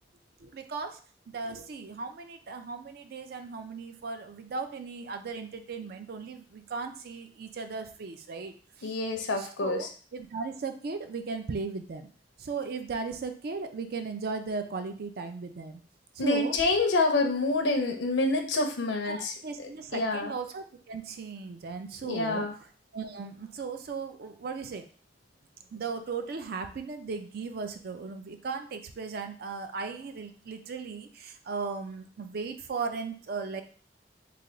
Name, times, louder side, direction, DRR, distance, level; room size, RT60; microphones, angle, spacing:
voice 1, 0.4-1.0 1.3-8.5 8.8-8.9 9.4-12.1 12.4-15.8 16.2-16.6 19.0-22.5 22.9-24.9 25.7-33.6, right 4 dB, 55° right, 7 dB, 0.4 m, -37 dB
voice 2, 8.8-9.9 16.2-19.3 19.9-20.3 22.0-22.5, left 2 dB, 90° left, 5 dB, 0.5 m, -27 dB
3.3 x 2.3 x 3.8 m, 0.42 s
head